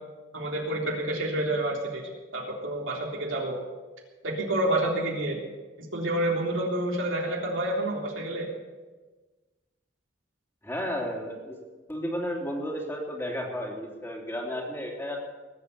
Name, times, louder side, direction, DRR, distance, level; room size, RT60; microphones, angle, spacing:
voice 1, 0.3-2.0 2.3-3.6 4.2-5.4 5.9-8.5, right 1 dB, 80° right, -1 dB, 3.5 m, -28 dB
voice 2, 10.6-11.6 11.9-15.3, equal, 10° left, -1 dB, 3.1 m, -33 dB
19.5 x 8.3 x 8.4 m, 1.3 s
head